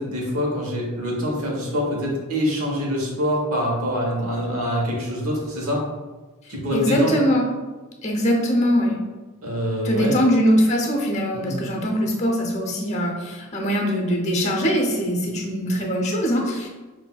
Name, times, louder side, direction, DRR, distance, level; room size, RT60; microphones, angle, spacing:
voice 1, 0.0-5.9 6.5-7.2 9.4-10.2 11.3-11.6, equal, 85° right, -2 dB, 1.1 m, -25 dB
voice 2, 6.7-7.5 8.0-9.0 9.8-16.7, equal, 35° left, 0 dB, 0.7 m, -22 dB
5.8 x 2.7 x 2.3 m, 1.3 s
head